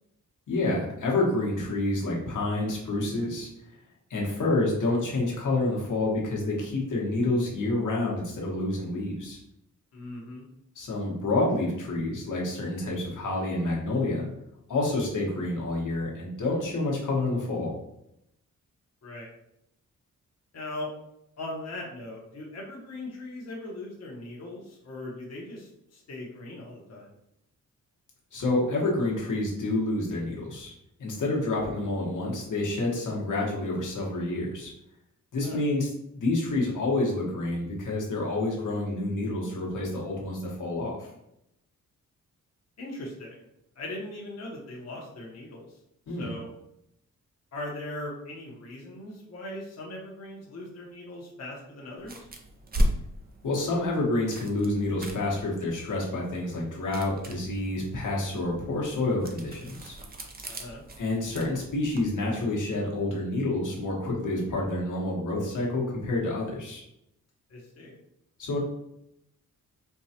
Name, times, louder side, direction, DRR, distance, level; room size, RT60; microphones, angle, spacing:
voice 1, 0.5-3.5 4.1-9.4 10.7-14.3 14.7-17.7 28.3-30.7 31.0-34.7 35.3-41.1 46.1-46.3 53.4-60.0 61.0-66.8 68.4-68.6, left 2 dB, 70° left, -3 dB, 1.3 m, -28 dB
voice 2, 9.9-10.4 19.0-19.3 20.5-20.9 21.4-27.1 35.4-35.6 42.8-43.4 43.8-45.7 46.2-46.5 47.5-52.3 60.5-60.8 67.5-68.0, left 1 dB, 55° left, -2 dB, 1.0 m, -39 dB
sound 1, 52.0-62.1, equal, 30° right, 0.5 m, -36 dB
4.6 x 2.3 x 2.8 m, 0.80 s
cardioid pair, 95°, 32 cm